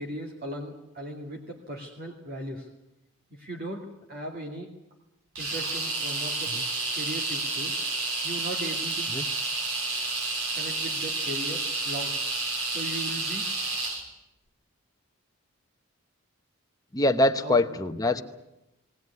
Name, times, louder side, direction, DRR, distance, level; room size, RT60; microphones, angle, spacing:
voice 1, 0.0-2.7 3.3-4.7 5.4-6.6 6.9-7.8 8.2-9.1 10.5-12.2 12.7-13.7 17.4-17.6 18.1-18.2, right 1 dB, 45° right, -1 dB, 2.4 m, -38 dB
sound 1, 5.4-14.0, right 3 dB, 80° right, 3.9 m, -30 dB
voice 2, 16.9-18.2, left 2 dB, 15° left, 6 dB, 0.9 m, -24 dB
19.0 x 19.0 x 9.6 m, 0.90 s
head